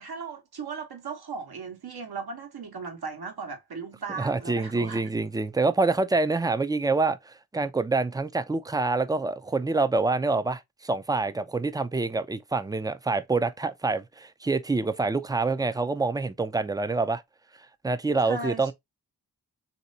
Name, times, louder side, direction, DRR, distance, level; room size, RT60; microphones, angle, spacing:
voice 1, 0.0-5.0 18.2-18.7, right 4 dB, 75° right, 1.1 m, -37 dB
voice 2, 4.2-17.2 17.8-18.7, right 3 dB, 10° right, 0.3 m, -26 dB
3.2 x 2.7 x 2.7 m
cardioid pair, 55°, 38 cm